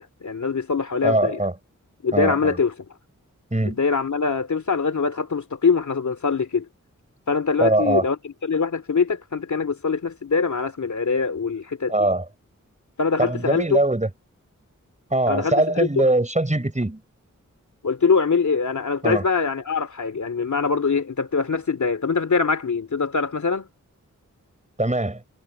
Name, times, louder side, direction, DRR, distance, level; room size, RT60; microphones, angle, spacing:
voice 1, 0.0-1.4 2.0-2.7 3.6-6.7 7.3-12.1 13.0-13.8 15.3-16.1 17.8-23.7, left 5 dB, 65° left, 2.7 m, -23 dB
voice 2, 1.0-1.5 2.1-2.5 3.5-3.8 7.6-8.1 11.9-12.2 13.2-14.1 15.1-17.0 19.0-19.2 24.8-25.2, right 2 dB, 20° right, 7.1 m, -21 dB
wide cardioid pair, 65°, 32 cm